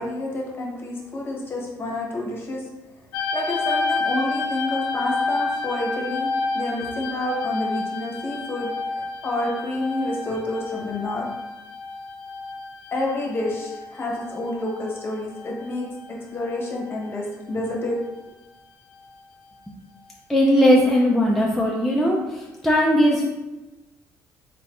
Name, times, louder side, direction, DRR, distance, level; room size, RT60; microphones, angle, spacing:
voice 1, 0.0-2.7 3.3-11.3 12.9-18.0, left 1 dB, 35° left, -2 dB, 1.0 m, -29 dB
sound 1, 3.1-16.1 16.3-17.1 17.9-18.1, left 3 dB, 90° left, 0.4 m, -30 dB
voice 2, 20.3-23.3, equal, ahead, -3 dB, 0.4 m, -19 dB
3.7 x 3.3 x 2.4 m, 1.1 s
cardioid pair, 105°, 7 cm